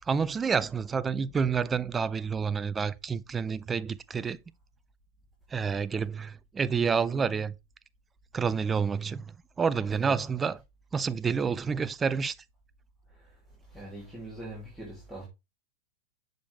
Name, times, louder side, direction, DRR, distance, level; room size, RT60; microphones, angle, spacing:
voice 1, 0.1-4.4 5.5-7.5 8.3-9.3 9.6-10.6 10.9-12.3, right 6 dB, 20° right, 0.4 m, -28 dB
voice 2, 13.7-15.3, right 1 dB, ahead, 2.5 m, -42 dB
6.8 x 5.2 x 3.2 m
hypercardioid pair, 110°, 0 cm